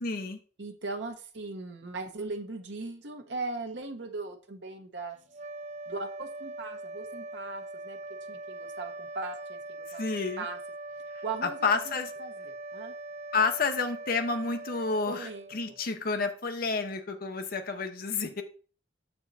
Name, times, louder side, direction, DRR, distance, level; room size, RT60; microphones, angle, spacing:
voice 1, 0.0-0.4 9.9-10.5 11.4-12.1 13.3-18.4, left 4 dB, 55° left, 6 dB, 0.8 m, -30 dB
voice 2, 0.6-5.2 5.9-8.0 8.3-10.1 10.4-10.6 11.2-11.8 12.2-12.9 15.1-15.5, right 3 dB, 80° right, 4 dB, 0.9 m, -38 dB
sound 1, 5.3-15.9, right 2 dB, 40° right, 0.4 m, -42 dB
7.1 x 4.5 x 4.0 m, 0.39 s
head